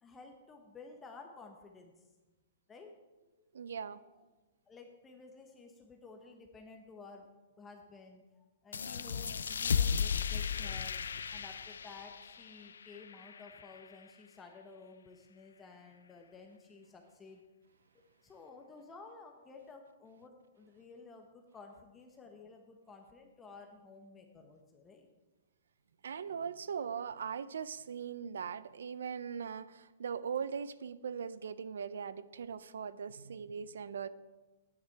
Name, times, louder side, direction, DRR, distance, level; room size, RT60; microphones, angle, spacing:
voice 1, 0.0-2.1 2.7-3.0 3.4-3.5 4.1-4.2 4.7-7.3 7.6-11.0 11.3-17.4 17.9-25.1, left 4 dB, 15° left, 3 dB, 1.0 m, -53 dB
voice 2, 3.5-4.0 26.0-34.1, right 7 dB, 80° right, 16 dB, 0.5 m, -40 dB
sound 1, 8.7-14.0, left 6 dB, 85° left, 0.4 m, -35 dB
9.7 x 9.7 x 4.7 m, 1.2 s
hypercardioid pair, 140°, 0 cm